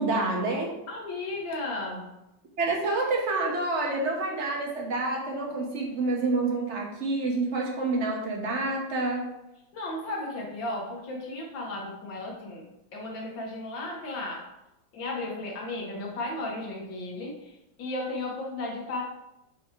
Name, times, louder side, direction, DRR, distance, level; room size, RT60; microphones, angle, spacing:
voice 1, 0.0-0.7 2.6-9.3, right 2 dB, 45° right, -1 dB, 1.2 m, -28 dB
voice 2, 0.9-2.1 9.7-14.5 14.9-19.0, left 2 dB, 75° left, -2 dB, 2.1 m, -35 dB
7.3 x 3.0 x 4.4 m, 0.90 s
omnidirectional pair, 2.1 m